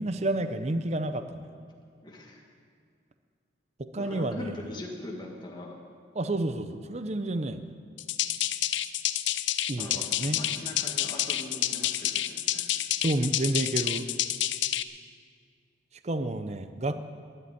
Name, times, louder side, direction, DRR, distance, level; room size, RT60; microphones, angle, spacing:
voice 1, 0.0-1.5 3.8-4.5 6.1-7.6 9.7-10.4 13.0-14.1 16.0-17.0, right 2 dB, 35° right, 10 dB, 0.6 m, -30 dB
voice 2, 2.0-2.4 4.0-5.7 9.8-12.7, left 1 dB, 25° left, -2 dB, 1.8 m, -41 dB
sound 1, 8.0-14.8, left 13 dB, 80° left, 0.6 m, -29 dB
13.0 x 10.0 x 9.5 m, 2.2 s
head